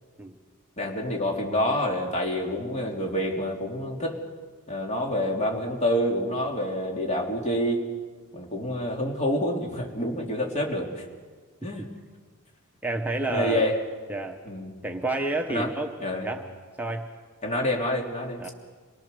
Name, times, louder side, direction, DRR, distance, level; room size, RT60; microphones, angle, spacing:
voice 1, 0.8-4.2 4.7-7.8 8.3-11.0 11.6-11.9 13.3-13.8 14.4-14.7 15.5-15.7 16.0-16.3 17.4-18.4, left 1 dB, 30° left, 0 dB, 3.2 m, -27 dB
voice 2, 12.8-13.7 14.1-14.4 14.8-15.9 16.2-16.5 16.8-17.1 18.4-18.5, right 2 dB, 10° right, 2 dB, 1.0 m, -29 dB
27.0 x 19.0 x 6.9 m, 1.5 s
head